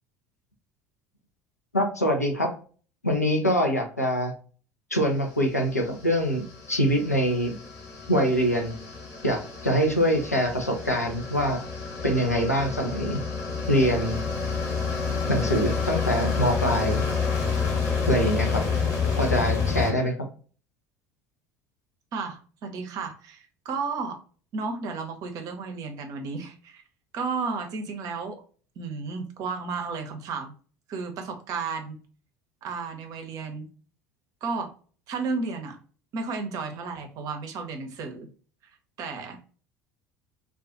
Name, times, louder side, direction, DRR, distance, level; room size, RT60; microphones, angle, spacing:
voice 1, 1.7-2.5 3.0-4.3 4.9-7.6 8.1-8.7 9.2-11.6 12.0-13.2 13.7-14.2 15.3-17.0 18.1-18.7 19.1-20.1, equal, 90° left, 2 dB, 0.4 m, -24 dB
sound 1, 5.2-19.9, left 5 dB, 50° left, 1.0 m, -29 dB
voice 2, 22.1-24.2 24.5-26.8 27.1-28.4 28.8-30.5 30.9-32.0 32.6-33.7 34.4-34.7 35.1-35.8 36.1-38.3 39.0-39.4, right 4 dB, 45° right, 5 dB, 0.6 m, -33 dB
2.3 x 2.3 x 2.4 m, 0.41 s
figure-of-eight pair, 65°, 8 cm